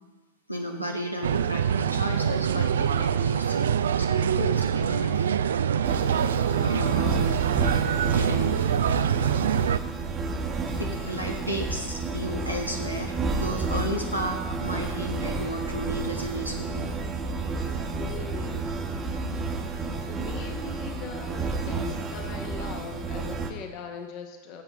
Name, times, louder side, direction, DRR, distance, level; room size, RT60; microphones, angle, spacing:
voice 1, 0.5-5.3 6.6-7.4 8.1-8.5 10.8-16.9, equal, 90° left, 1 dB, 1.2 m, -33 dB
sound 1, 1.2-9.8, right 8 dB, 65° right, 0.3 m, -25 dB
sound 2, 5.8-23.5, right 3 dB, 20° right, 1.0 m, -31 dB
voice 2, 17.9-18.9 20.0-24.6, left 6 dB, 40° left, 5 dB, 1.1 m, -40 dB
16.0 x 7.9 x 3.0 m, 1.2 s
figure-of-eight pair, 90°, 0 cm